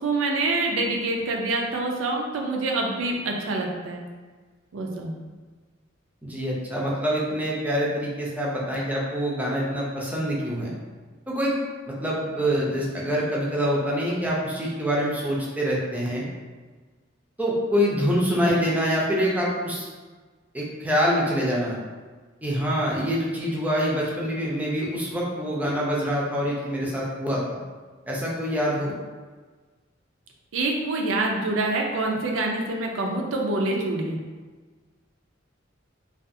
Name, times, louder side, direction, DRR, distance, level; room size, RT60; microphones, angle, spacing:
voice 1, 0.0-4.0 4.7-5.1 30.5-34.2, right 2 dB, 75° right, 1 dB, 0.4 m, -26 dB
voice 2, 6.2-10.7 11.3-11.5 11.9-16.2 17.4-19.9 20.5-21.8 22.4-27.6 28.1-28.9, equal, 10° right, -4 dB, 0.5 m, -25 dB
2.4 x 2.3 x 2.6 m, 1.4 s
head